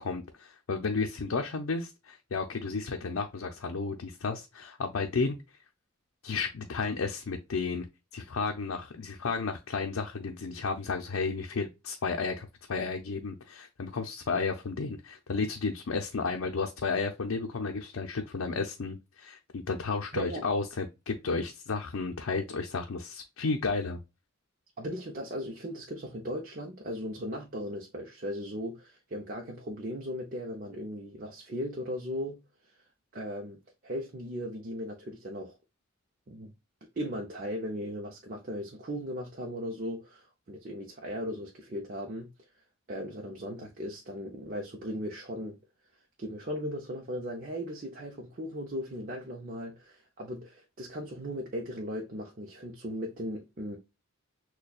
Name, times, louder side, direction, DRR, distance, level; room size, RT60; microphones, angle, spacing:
voice 1, 0.0-5.4 6.2-7.9 8.1-24.0, left 4 dB, 80° left, 0.5 m, -32 dB
voice 2, 20.1-20.5 24.8-32.8 33.1-33.6 33.8-35.6 36.3-36.5 37.0-42.3 42.9-45.6 46.2-53.8, equal, 40° right, 0.6 m, -37 dB
6.5 x 2.2 x 2.3 m
head